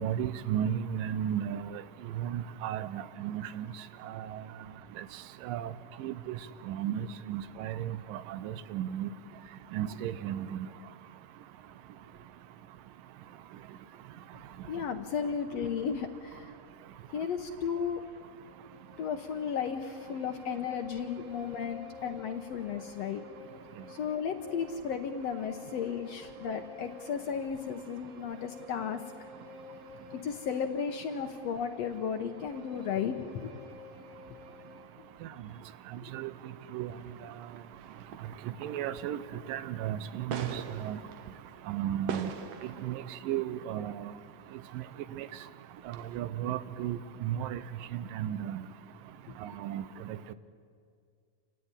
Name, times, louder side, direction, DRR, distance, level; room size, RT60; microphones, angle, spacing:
voice 1, 0.0-1.8 2.2-3.7 4.0-4.4 5.4-5.7 6.0-6.4 6.7-9.1 9.7-10.7 36.1-36.3 36.7-36.9 38.6-39.2 39.5-41.0 41.7-42.3 42.8-44.1 45.2-45.3 45.9-47.6 47.9-48.6 49.4-50.3, right 10 dB, 85° right, 14 dB, 2.5 m, -34 dB
voice 2, 14.7-16.5 17.1-18.0 19.0-23.2 23.9-29.0 30.2-33.6, left 7 dB, 65° left, 6 dB, 1.7 m, -34 dB
Bowed string instrument, 18.4-35.0, left 3 dB, 40° right, 7.9 m, -51 dB
sound 1, 36.9-45.0 45.3-45.5 45.9-46.2, right 7 dB, 65° right, 2.2 m, -44 dB
28.0 x 16.0 x 9.7 m, 2.3 s
omnidirectional pair, 3.8 m